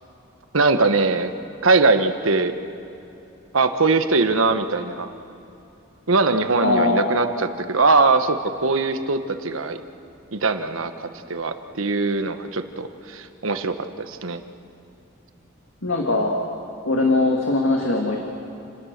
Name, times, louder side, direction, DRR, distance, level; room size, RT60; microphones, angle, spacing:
voice 1, 0.5-1.3 1.6-2.5 3.5-5.1 6.1-9.8 10.3-14.4, right 3 dB, 85° right, 8 dB, 1.3 m, -21 dB
voice 2, 6.6-7.1 15.8-16.4 16.9-18.2, left 2 dB, 80° left, 1 dB, 2.1 m, -20 dB
29.0 x 19.5 x 6.7 m, 2.9 s
head